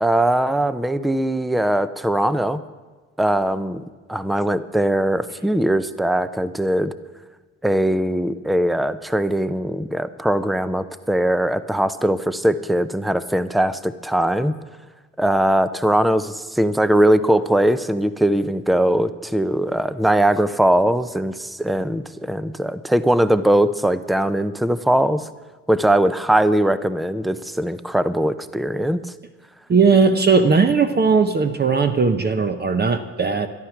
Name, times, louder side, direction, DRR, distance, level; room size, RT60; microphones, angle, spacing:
voice 1, 0.0-2.6 3.2-3.8 4.1-6.9 7.6-14.5 15.2-25.3 25.7-29.0, right 1 dB, ahead, 14 dB, 0.6 m, -20 dB
voice 2, 29.7-33.5, right 5 dB, 35° right, 8 dB, 0.9 m, -17 dB
13.5 x 11.5 x 5.9 m, 1.3 s
cardioid pair, 90°, 30 cm